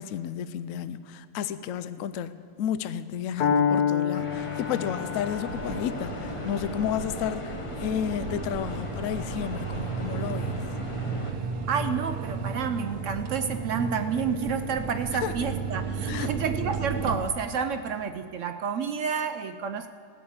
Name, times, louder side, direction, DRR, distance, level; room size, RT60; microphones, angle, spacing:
voice 1, 0.0-10.6 15.2-15.3 16.1-16.3, left 9 dB, 70° left, 13 dB, 0.9 m, -32 dB
Piano, 3.4-11.3, left 7 dB, 90° left, 1.7 m, -31 dB
sound 1, 4.1-11.3, left 2 dB, 25° left, 0.8 m, -38 dB
sound 2, 5.5-17.2, right 5 dB, 85° right, 1.5 m, -34 dB
voice 2, 11.7-19.9, right 6 dB, 65° right, 9 dB, 0.8 m, -30 dB
16.0 x 6.7 x 8.7 m, 2.5 s
omnidirectional pair, 1.6 m